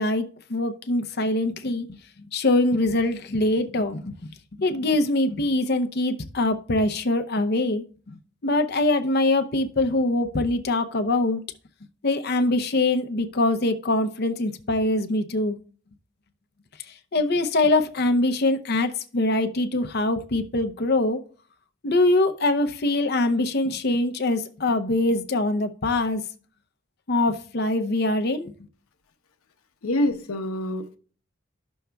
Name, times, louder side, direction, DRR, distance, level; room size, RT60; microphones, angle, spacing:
voice 1, 0.0-2.0 2.3-4.2 4.6-11.4 12.0-15.6 17.1-21.2 21.8-26.2 27.1-28.5, left 2 dB, 50° left, 0.6 m, -23 dB
voice 2, 29.8-31.0, left 1 dB, 90° left, 0.9 m, -26 dB
13.5 x 6.2 x 2.3 m
head